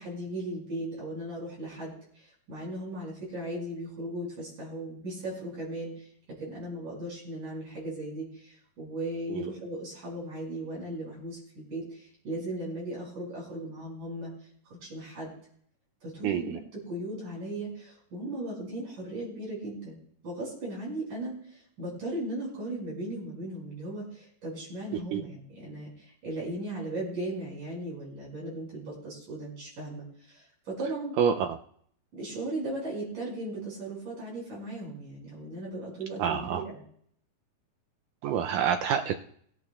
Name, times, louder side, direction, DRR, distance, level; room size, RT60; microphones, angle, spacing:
voice 1, 0.0-6.1 6.4-14.3 14.7-15.3 16.0-20.0 20.2-31.1 32.1-36.8, right 1 dB, 55° right, -5 dB, 7.2 m, -37 dB
voice 2, 16.2-16.6 24.9-25.2 31.2-31.5 36.2-36.6 38.2-39.2, right 8 dB, 85° right, 6 dB, 1.9 m, -27 dB
23.0 x 11.5 x 2.3 m, 0.64 s
omnidirectional pair, 4.3 m